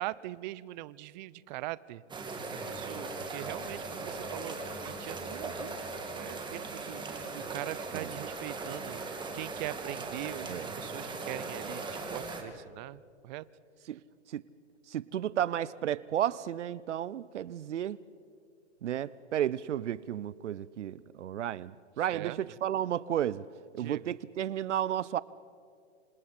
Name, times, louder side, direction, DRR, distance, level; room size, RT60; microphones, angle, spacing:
voice 1, 0.0-2.0 2.5-5.8 6.1-9.0 9.3-13.4 22.1-22.4 23.8-24.1, right 17 dB, 40° right, 20 dB, 0.6 m, -41 dB
sound 1, 2.1-12.4, right 3 dB, 15° right, 2.2 m, -39 dB
voice 2, 14.9-18.0 18.8-23.4 23.7-25.2, right 11 dB, 85° right, 20 dB, 0.6 m, -33 dB
27.5 x 26.5 x 4.3 m, 2.4 s
hypercardioid pair, 125°, 35 cm